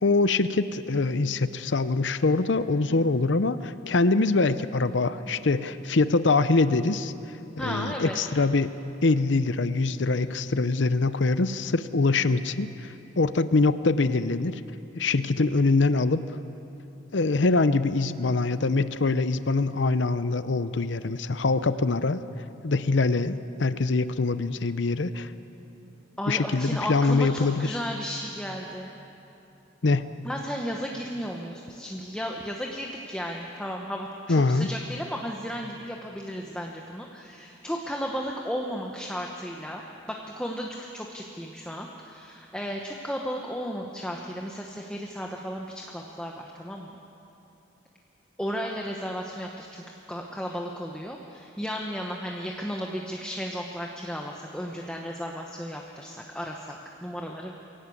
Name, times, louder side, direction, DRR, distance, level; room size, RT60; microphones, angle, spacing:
voice 1, 0.0-7.1 7.6-8.7 9.0-14.6 15.0-16.2 17.1-22.2 22.6-25.3 26.3-27.8 29.8-30.1 34.3-34.7, left 3 dB, 65° left, 13 dB, 0.7 m, -24 dB
voice 2, 7.6-8.2 26.2-28.9 30.2-47.0 48.4-57.5, equal, 5° left, 0 dB, 1.0 m, -34 dB
23.5 x 17.0 x 8.5 m, 2.9 s
head